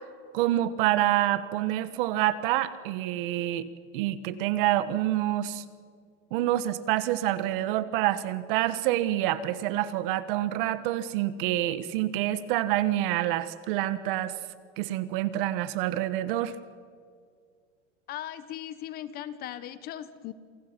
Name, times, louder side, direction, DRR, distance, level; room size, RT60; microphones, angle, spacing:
voice 1, 0.3-3.7 3.9-5.6 6.3-14.3 14.8-16.5, right 14 dB, 50° right, 14 dB, 1.3 m, -27 dB
voice 2, 18.1-20.3, left 11 dB, 25° left, 15 dB, 0.9 m, -38 dB
28.0 x 18.0 x 6.0 m, 2.1 s
supercardioid pair, 160°, 35 cm